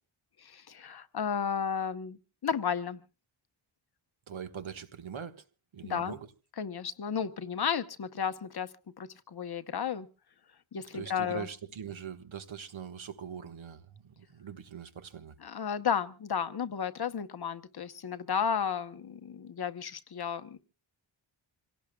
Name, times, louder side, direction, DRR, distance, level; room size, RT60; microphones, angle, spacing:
voice 1, 0.4-3.0 5.8-6.2 6.6-8.7 9.0-10.1 10.7-11.5 15.4-20.6, left 7 dB, 50° left, 0.9 m, -33 dB
voice 2, 4.3-5.4 5.7-6.3 10.8-15.3, right 7 dB, 75° right, 1.5 m, -42 dB
26.5 x 17.5 x 2.3 m
wide cardioid pair, 170°, 47 cm